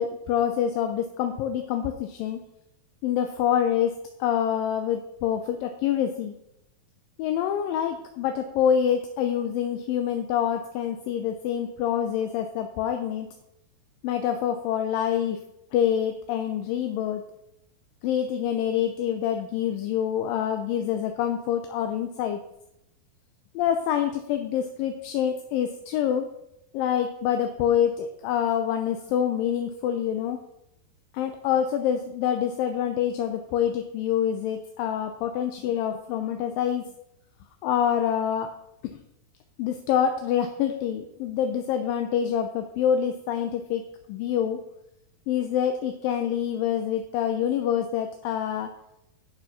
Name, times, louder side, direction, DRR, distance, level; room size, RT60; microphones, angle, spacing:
voice 1, 0.0-2.4 3.0-3.9 4.2-6.4 7.2-13.3 14.0-15.4 15.7-17.2 18.0-22.4 23.6-26.3 26.7-30.4 31.1-36.8 37.6-38.5 38.8-39.0 39.6-43.8 44.1-44.6 45.3-48.7, left 9 dB, 75° left, 6 dB, 2.1 m, -26 dB
9.1 x 7.2 x 5.8 m, 0.82 s
omnidirectional pair, 4.6 m